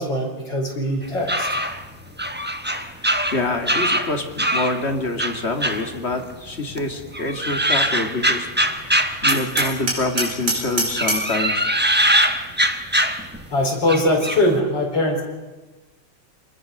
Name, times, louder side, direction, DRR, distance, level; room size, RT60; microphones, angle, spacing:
voice 1, 0.0-1.5 13.5-15.2, left 1 dB, 55° left, 0 dB, 5.1 m, -21 dB
sound 1, 1.0-4.8 5.2-6.5 6.8-10.4 10.9-13.5 13.9-14.5, right 1 dB, 15° right, 0.3 m, -22 dB
voice 2, 2.7-11.8, left 3 dB, 30° left, 4 dB, 2.2 m, -27 dB
Hammer, 9.3-11.4, right 3 dB, 90° right, 5.5 m, -25 dB
26.0 x 20.0 x 6.5 m, 1.2 s
omnidirectional pair, 2.3 m